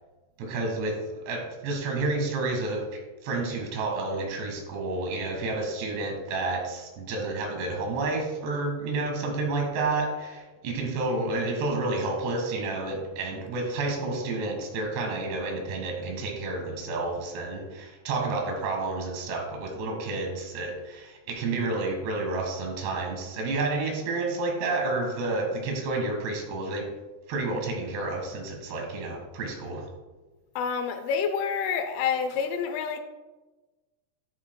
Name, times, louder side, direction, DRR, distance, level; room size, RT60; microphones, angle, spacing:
voice 1, 0.4-2.9 3.2-26.9 27.3-29.9, right 3 dB, 75° right, 2 dB, 3.6 m, -30 dB
voice 2, 30.6-33.0, left 6 dB, 85° left, 7 dB, 2.3 m, -28 dB
13.0 x 8.2 x 2.2 m, 1.2 s
omnidirectional pair, 5.0 m